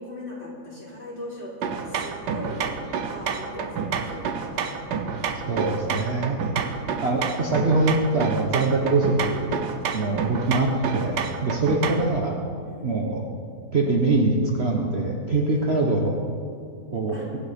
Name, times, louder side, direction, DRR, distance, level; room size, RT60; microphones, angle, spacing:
voice 1, 0.0-4.8 10.0-10.3 11.5-12.0 12.7-12.9 15.5-15.6 17.1-17.3, left 1 dB, 30° left, -5 dB, 3.7 m, -39 dB
sound 1, 1.6-12.2, right 6 dB, 90° right, 1.6 m, -29 dB
voice 2, 5.4-6.4 7.0-9.6 9.9-12.4 12.8-13.3 13.7-16.2 16.9-17.2, right 2 dB, 40° right, 0 dB, 1.3 m, -23 dB
23.5 x 8.9 x 5.2 m, 2.3 s
omnidirectional pair, 1.8 m